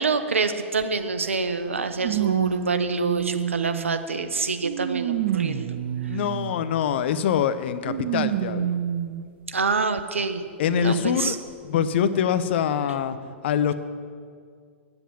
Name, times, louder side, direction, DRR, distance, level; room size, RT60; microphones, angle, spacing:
voice 1, 0.0-5.8 9.5-10.4 10.8-11.4, right 4 dB, 85° right, 9 dB, 0.8 m, -26 dB
sound 1, 0.8-0.9 2.0-4.1 4.6-6.7 7.8-9.3 10.0-10.1 11.2-11.3, right 10 dB, 55° right, 0.6 m, -28 dB
voice 2, 6.1-8.8 10.6-11.4 11.7-13.2 13.4-13.7, left 8 dB, 60° left, 12 dB, 0.7 m, -24 dB
9.1 x 7.9 x 8.6 m, 2.1 s
hypercardioid pair, 110°, 7 cm